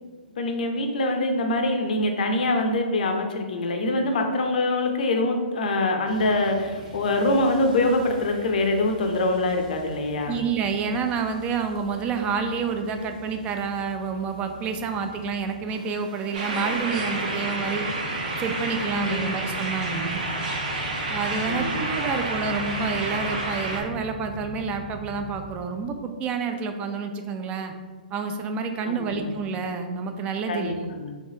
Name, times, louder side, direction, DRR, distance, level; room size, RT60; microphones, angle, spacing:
voice 1, 0.4-10.4 18.9-19.2 21.5-21.8 28.8-29.3 30.5-31.2, left 2 dB, 65° left, 4 dB, 0.5 m, -24 dB
sound 1, 6.1-25.6, equal, 80° right, 1.5 m, -41 dB
voice 2, 10.3-17.9 18.4-20.2 21.1-27.7 28.1-30.8, right 5 dB, 25° right, 6 dB, 0.3 m, -29 dB
ambience sloniarni, 16.3-23.8, right 2 dB, 60° right, 0.7 m, -30 dB
3.3 x 3.2 x 2.7 m, 1.5 s
hypercardioid pair, 130°, 5 cm